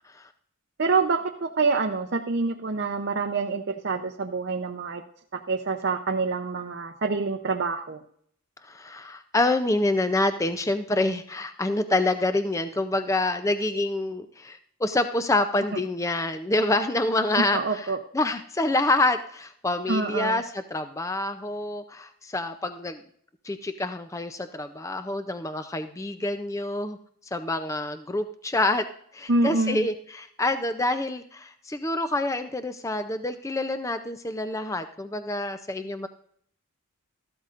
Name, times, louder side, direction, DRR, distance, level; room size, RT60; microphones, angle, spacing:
voice 1, 0.8-5.0 5.3-8.0 15.7-15.8 17.3-18.0 19.9-20.4 29.3-29.9, right 3 dB, 50° right, 3 dB, 0.7 m, -26 dB
voice 2, 8.6-23.0 23.4-27.0 27.3-28.9 29.1-36.1, left 2 dB, 15° left, 9 dB, 0.5 m, -27 dB
14.0 x 12.5 x 2.5 m, 0.64 s
head